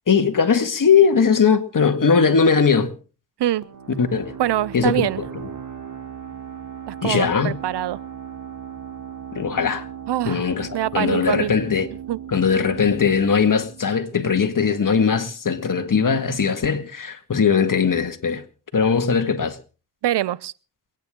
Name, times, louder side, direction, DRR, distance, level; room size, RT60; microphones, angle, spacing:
voice 1, 0.1-2.9 4.0-4.3 4.7-5.3 7.0-7.6 9.3-9.9 10.3-11.9 12.3-18.4 18.7-19.6, left 6 dB, 50° left, 1.9 m, -19 dB
sound 1, 3.6-15.0, right 8 dB, 45° right, 2.8 m, -37 dB
voice 2, 4.4-5.2 6.9-8.0 10.1-10.4 10.7-11.5 12.1-12.2 20.0-20.5, right 12 dB, 85° right, 0.6 m, -24 dB
28.0 x 9.6 x 3.7 m
cardioid pair, 65°, 40 cm